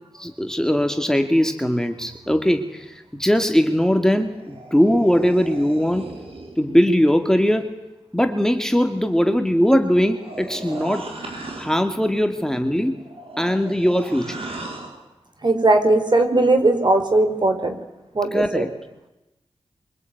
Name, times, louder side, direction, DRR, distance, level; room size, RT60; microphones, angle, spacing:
voice 1, 0.1-6.1 6.6-7.7 8.1-11.1 11.6-13.0 13.4-14.4 18.3-18.7, equal, 5° left, 6 dB, 2.4 m, -20 dB
sound 1, 4.2-6.6 9.7-11.9 12.9-15.0, right 2 dB, 65° right, 6.3 m, -37 dB
voice 2, 15.4-17.7 18.1-18.6, right 2 dB, 45° right, 6 dB, 4.6 m, -18 dB
25.0 x 24.5 x 9.4 m, 0.99 s
cardioid pair, 55°, 11 cm